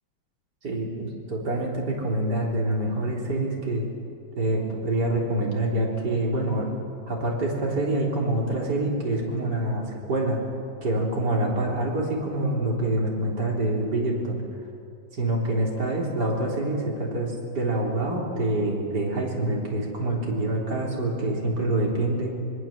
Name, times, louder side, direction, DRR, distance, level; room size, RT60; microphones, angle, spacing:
voice 1, 0.6-3.9 4.4-6.7 7.1-10.4 10.8-14.4 15.2-22.3, right 1 dB, 60° right, -2 dB, 4.4 m, -26 dB
25.0 x 22.5 x 7.4 m, 2.5 s
omnidirectional pair, 2.1 m